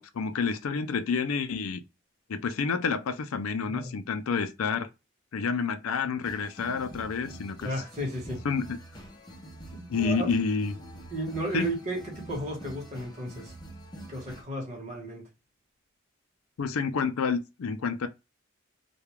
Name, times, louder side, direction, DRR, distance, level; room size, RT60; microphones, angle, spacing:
voice 1, 0.0-1.8 2.3-4.9 5.3-7.7 8.4-8.8 9.9-10.8 11.5-11.7 16.6-18.1, left 5 dB, 90° left, 0.4 m, -29 dB
sound 1, 6.2-14.4, right 1 dB, 20° left, 0.6 m, -46 dB
voice 2, 7.6-8.4 9.7-10.3 11.1-13.5 14.1-15.2, right 1 dB, 35° right, 1.1 m, -34 dB
2.3 x 2.2 x 3.0 m
head